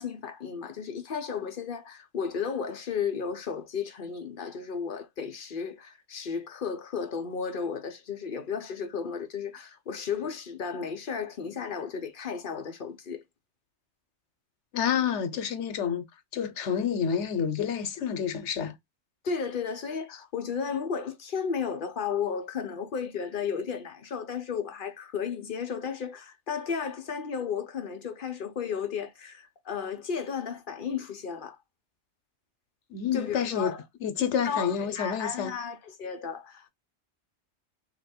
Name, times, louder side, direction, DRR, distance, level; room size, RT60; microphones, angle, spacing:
voice 1, 0.0-13.2 19.2-31.6 33.1-33.8 34.4-36.7, left 6 dB, 50° left, 0.8 m, -34 dB
voice 2, 14.7-16.0 16.3-18.7 32.9-33.7 34.0-35.5, left 8 dB, 90° left, 1.1 m, -28 dB
3.2 x 2.9 x 4.2 m
omnidirectional pair, 1.2 m